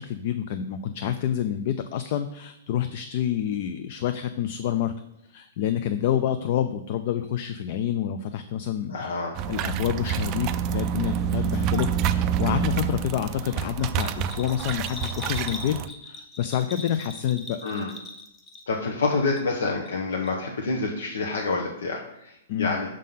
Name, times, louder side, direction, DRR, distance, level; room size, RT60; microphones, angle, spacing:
voice 1, 0.0-4.9 5.3-9.2 9.5-15.8 16.0-17.6 22.5-22.8, left 10 dB, 45° left, 9 dB, 0.4 m, -28 dB
voice 2, 8.9-9.4 17.6-17.9 18.7-23.0, left 3 dB, 85° left, 0 dB, 1.0 m, -28 dB
sound 1, 9.4-15.9, right 9 dB, 25° right, 0.3 m, -27 dB
Bell, 13.8-18.9 19.2-20.0 20.2-20.3, left 2 dB, 15° left, 0.7 m, -41 dB
6.3 x 3.7 x 5.6 m, 0.87 s
hypercardioid pair, 160°, 0 cm